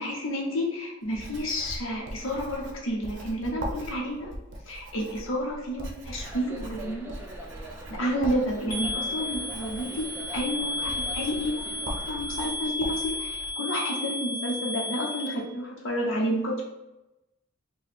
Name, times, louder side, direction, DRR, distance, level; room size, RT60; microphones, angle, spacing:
voice 1, 0.0-4.3 4.7-7.1 7.9-16.6, equal, 80° left, -1 dB, 0.9 m, -30 dB
Writing, 1.1-13.5, right 1 dB, 65° right, 0.6 m, -40 dB
sound 1, 6.2-12.2, right 1 dB, 10° right, 0.4 m, -44 dB
sound 2, 8.7-15.3, left 2 dB, 50° left, 1.0 m, -33 dB
4.6 x 2.3 x 3.3 m, 0.96 s
head